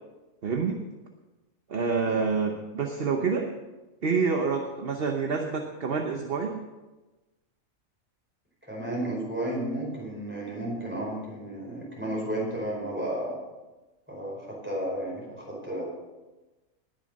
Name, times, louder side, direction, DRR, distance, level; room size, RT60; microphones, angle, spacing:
voice 1, 0.4-0.8 1.7-3.5 4.0-6.6, right 5 dB, 45° right, 3 dB, 1.1 m, -27 dB
voice 2, 8.6-13.4 14.1-15.8, right 1 dB, 10° right, -4 dB, 4.8 m, -33 dB
19.5 x 6.6 x 5.3 m, 1.1 s
omnidirectional pair, 1.4 m